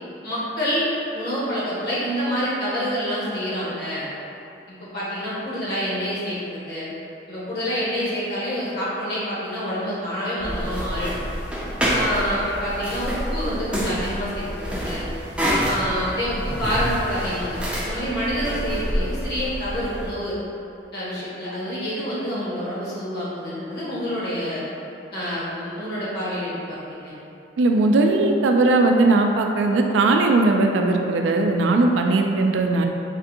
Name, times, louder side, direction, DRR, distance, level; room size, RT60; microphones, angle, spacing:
voice 1, 0.2-0.9 1.1-4.1 4.7-6.9 7.3-11.2 11.9-15.0 15.7-20.4 20.9-24.6 25.1-27.1, equal, 60° left, -9 dB, 1.0 m, -27 dB
sound 1, 10.4-20.1, equal, 5° right, 0.4 m, -27 dB
voice 2, 27.6-32.9, right 2 dB, 90° right, 3 dB, 0.3 m, -19 dB
3.4 x 2.5 x 2.7 m, 2.8 s
head